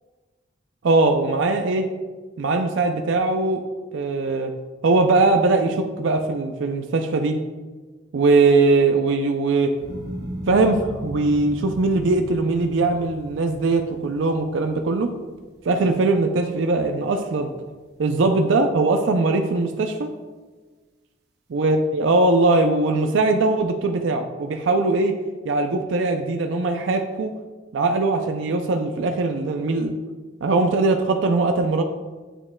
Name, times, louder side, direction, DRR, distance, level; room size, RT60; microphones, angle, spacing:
voice 1, 0.8-1.8 2.4-3.6 3.9-4.5 4.8-7.3 8.1-9.7 10.5-15.1 15.6-17.5 18.0-20.1 21.5-25.1 25.4-27.3 27.7-29.9 30.4-31.8, right 3 dB, 75° right, 6 dB, 0.4 m, -20 dB
sound 1, 9.8-16.1 16.5-17.1, right 1 dB, 55° right, 0.8 m, -37 dB
8.9 x 6.4 x 2.2 m, 1.3 s
head